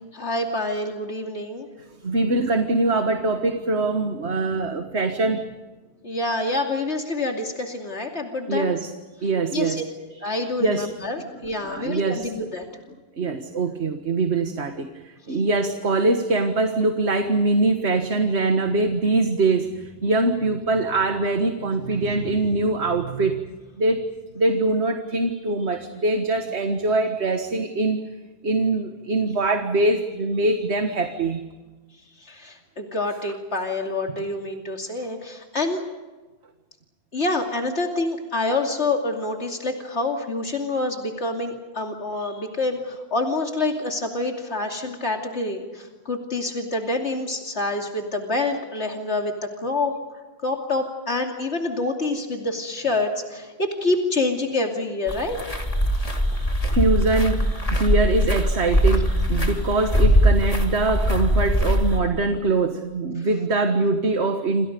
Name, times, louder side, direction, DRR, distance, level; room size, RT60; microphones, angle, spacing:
voice 1, 0.1-1.7 6.0-8.7 9.5-9.8 10.2-12.7 32.2-35.8 37.1-50.0 50.4-55.4, left 2 dB, 85° left, 2 dB, 3.0 m, -27 dB
voice 2, 2.0-5.5 8.5-8.9 9.2-9.8 10.6-10.9 11.6-12.3 13.2-23.4 23.8-24.1 24.3-28.1 28.4-31.4 56.4-64.7, right 2 dB, 80° right, 6 dB, 1.9 m, -23 dB
sound 1, 55.1-62.0, equal, 35° left, 3.0 m, -21 dB
28.5 x 27.5 x 5.3 m, 1.2 s
omnidirectional pair, 1.1 m